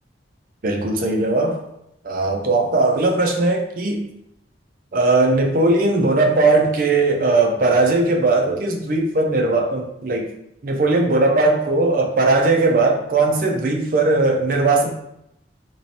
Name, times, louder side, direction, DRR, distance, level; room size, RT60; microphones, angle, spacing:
voice 1, 0.6-1.6 2.0-4.0 4.9-10.3 10.6-14.9, right 2 dB, 50° right, 1 dB, 0.5 m, -18 dB
3.0 x 3.0 x 2.7 m, 0.80 s
head